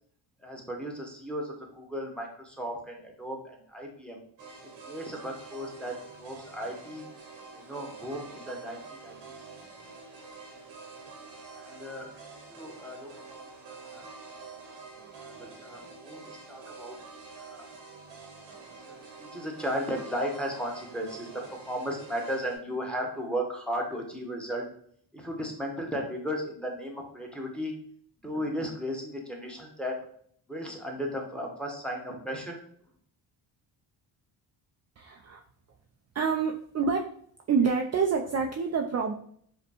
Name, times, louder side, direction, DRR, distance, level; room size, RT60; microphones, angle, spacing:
voice 1, 0.4-4.2 4.9-7.1 7.5-9.4 11.6-14.0 15.2-17.0 17.4-17.7 18.9-24.7 25.1-27.7 28.2-30.0 30.5-32.6, equal, ahead, 0 dB, 1.0 m, -35 dB
sound 1, 4.4-22.6, right 4 dB, 90° right, 1.2 m, -47 dB
voice 2, 35.0-35.4 36.1-37.1 37.5-39.1, right 5 dB, 40° right, 3 dB, 0.4 m, -27 dB
5.0 x 2.2 x 2.9 m, 0.64 s
cardioid pair, 75°, 44 cm